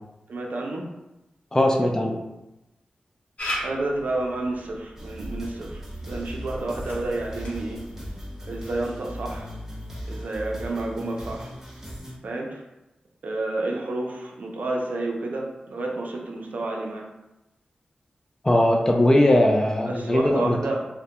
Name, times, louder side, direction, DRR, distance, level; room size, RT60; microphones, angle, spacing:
voice 1, 0.3-0.9 3.6-7.8 8.5-9.5 10.1-11.5 12.2-12.6 13.2-17.1 19.8-20.9, right 2 dB, 70° right, 0 dB, 0.4 m, -30 dB
voice 2, 1.5-2.2 18.4-20.6, left 1 dB, 20° left, 1 dB, 0.4 m, -19 dB
Camera, 3.4-8.8, equal, 55° left, 0.8 m, -38 dB
sound 1, 5.0-12.1, equal, 15° right, 0.8 m, -38 dB
2.2 x 2.1 x 2.8 m, 0.96 s
wide cardioid pair, 75°, 3 cm